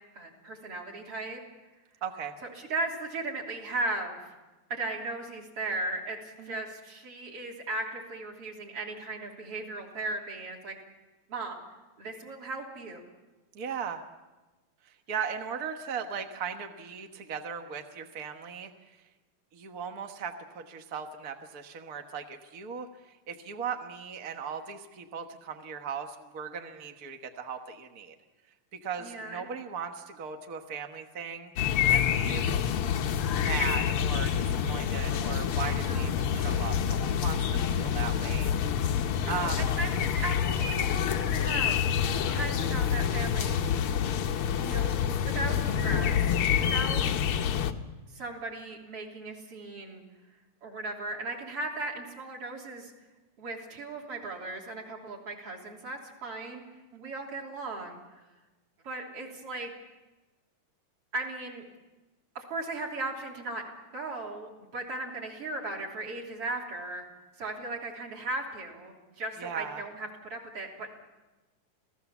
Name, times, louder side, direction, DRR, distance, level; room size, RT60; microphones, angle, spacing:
voice 1, 0.1-1.4 2.4-4.3 4.7-10.7 11.3-11.6 12.0-13.0 29.0-29.5 35.7-36.3 39.2-41.9 42.3-43.6 44.6-47.1 48.1-50.0 50.6-52.9 53.4-56.7 57.0-58.0 58.8-59.7 61.1-61.6 62.4-63.6 63.9-67.1 67.4-71.1, right 2 dB, 40° right, 0 dB, 3.9 m, -37 dB
voice 2, 2.0-2.3 6.4-6.6 13.5-14.0 14.8-19.0 19.5-28.1 28.7-31.5 31.9-32.5 33.3-38.5 39.2-39.6 43.9-44.2 56.9-57.1 69.4-69.8, right 7 dB, 70° right, 5 dB, 0.8 m, -38 dB
sound 1, 31.6-47.7, left 8 dB, 85° left, 1.2 m, -27 dB
27.5 x 17.5 x 7.2 m, 1.1 s
omnidirectional pair, 3.9 m